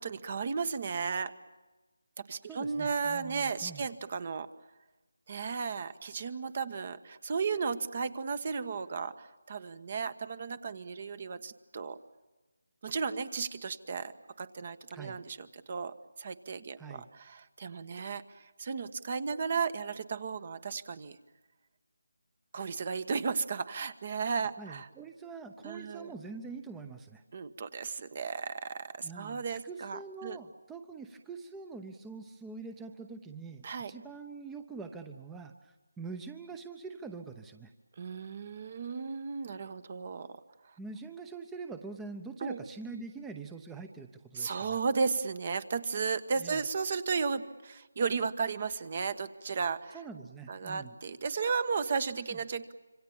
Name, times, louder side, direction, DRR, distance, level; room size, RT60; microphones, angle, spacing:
voice 1, 0.0-1.3 2.2-4.5 5.3-12.0 12.8-14.1 14.4-21.2 22.5-24.9 25.6-26.1 27.3-30.4 33.6-33.9 38.0-40.4 42.4-42.6 44.3-50.0 50.5-52.7, right 5 dB, 40° right, 14 dB, 1.3 m, -34 dB
voice 2, 2.4-3.8 14.9-15.2 16.8-17.1 24.6-27.2 29.0-37.7 40.8-44.8 46.4-46.6 49.9-50.9 52.3-52.4, right 4 dB, 5° right, 7 dB, 0.9 m, -44 dB
26.5 x 24.5 x 7.3 m, 1.2 s
figure-of-eight pair, 165°, 0 cm